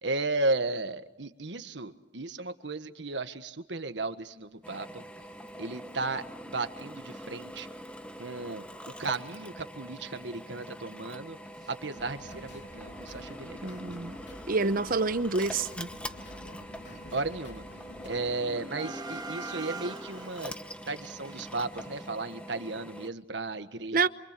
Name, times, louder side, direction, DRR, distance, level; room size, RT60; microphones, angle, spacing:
voice 1, 0.0-5.0 5.6-7.7 8.2-8.7 9.0-11.4 11.7-13.7 16.9-17.6 18.0-20.5 20.9-24.1, right 3 dB, 80° right, 1.5 m, -35 dB
Drill, 4.6-23.1, equal, 5° left, 1.1 m, -44 dB
sound 1, 6.3-6.4 6.8-6.9 7.0-7.2 8.0-8.1 8.5-8.7 9.0-9.1 9.5-11.7 11.9-12.7 12.9-22.1, right 3 dB, 25° right, 1.1 m, -47 dB
sound 2, 11.9-18.3, left 1 dB, 85° left, 2.9 m, -49 dB
voice 2, 13.6-14.2 14.5-15.9 23.9-24.1, right 4 dB, 55° right, 0.9 m, -27 dB
28.0 x 25.0 x 6.9 m
head